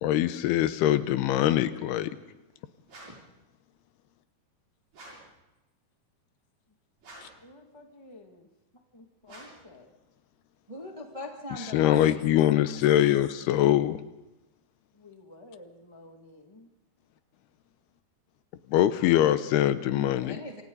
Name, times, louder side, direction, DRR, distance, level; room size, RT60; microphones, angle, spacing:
voice 1, 0.0-2.1 11.7-14.0 18.7-20.4, left 12 dB, 80° left, 12 dB, 2.8 m, -23 dB
sound 1, 2.8-3.3 4.9-5.4 7.0-7.5 9.2-9.7, right 1 dB, 65° right, 9.1 m, -49 dB
voice 2, 7.4-8.5 8.9-9.9 14.9-16.7, left 2 dB, 15° left, 2 dB, 1.1 m, -52 dB
voice 3, 10.7-12.2 19.9-20.6, left 1 dB, 10° right, 0 dB, 1.6 m, -40 dB
27.0 x 25.5 x 4.1 m, 0.96 s
omnidirectional pair, 4.6 m